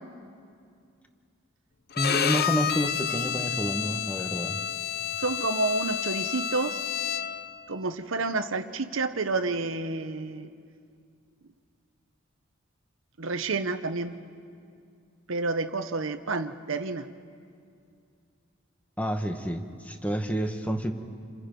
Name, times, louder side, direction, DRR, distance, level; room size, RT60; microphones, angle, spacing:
Bowed string instrument, 1.9-7.5, left 8 dB, 50° left, 0.6 m, -30 dB
voice 1, 2.0-4.6 19.0-20.9, equal, 5° left, 6 dB, 1.2 m, -29 dB
voice 2, 5.2-6.8 7.7-10.5 13.2-14.2 15.3-17.1, right 3 dB, 70° right, 9 dB, 0.9 m, -29 dB
28.5 x 26.0 x 5.3 m, 2.4 s
head